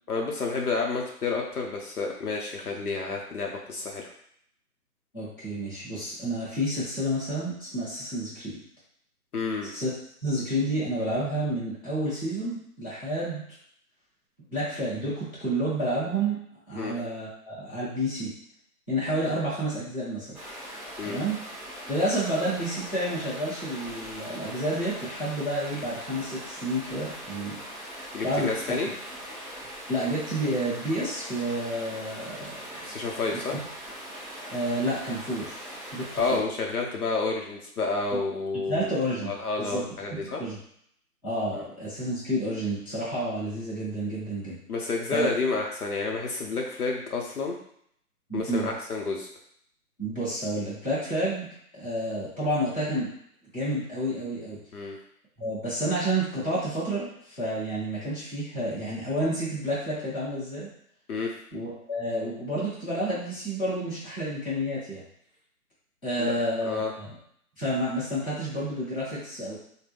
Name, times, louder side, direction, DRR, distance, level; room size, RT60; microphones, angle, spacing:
voice 1, 0.1-4.1 9.3-9.7 16.7-17.0 19.2-19.3 21.0-21.2 28.1-28.9 32.8-33.6 36.1-38.9 39.2-40.4 41.6-41.7 44.7-47.6 48.3-49.3 54.7-55.0 61.1-61.3 66.2-66.3 66.6-66.9, left 4 dB, 70° left, 0 dB, 0.8 m, -30 dB
voice 2, 5.1-8.5 9.6-9.9 10.2-13.4 14.5-16.4 16.7-18.3 18.9-20.4 21.0-21.4 21.9-27.6 28.2-28.7 29.9-32.8 33.3-33.4 34.5-35.6 35.9-36.4 38.1-38.2 38.7-39.3 39.6-39.8 40.1-40.6 41.2-44.6 45.1-45.3 48.3-48.7 50.0-51.5 51.7-53.1 53.5-54.6 55.4-60.7 61.5-65.0 66.0-67.1 67.6-69.6, right 1 dB, 15° left, -11 dB, 1.2 m, -30 dB
Stream, 20.3-36.4, equal, 5° right, 1.0 m, -41 dB
3.7 x 2.2 x 3.4 m, 0.68 s
figure-of-eight pair, 160°, 46 cm